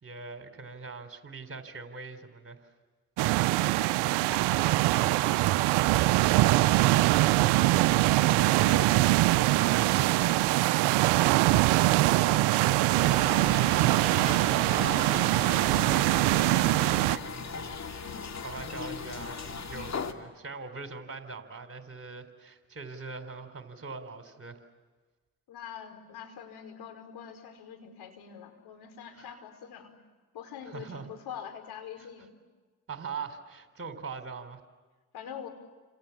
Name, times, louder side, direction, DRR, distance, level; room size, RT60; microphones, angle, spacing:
voice 1, 0.0-2.7 8.2-9.0 9.3-24.6 29.1-29.3 30.7-31.1 32.0-32.1 32.9-34.6, right 4 dB, 30° right, 7 dB, 4.2 m, -42 dB
sound 1, 3.2-17.2, right 18 dB, 70° right, 0.8 m, -23 dB
voice 2, 3.8-5.7 25.5-29.9 30.3-32.4 35.1-35.5, left 8 dB, 65° left, 6 dB, 5.2 m, -45 dB
sound 2, 12.9-20.1, left 5 dB, 40° left, 2.6 m, -38 dB
30.0 x 27.0 x 7.3 m, 1.3 s
hypercardioid pair, 55°, 42 cm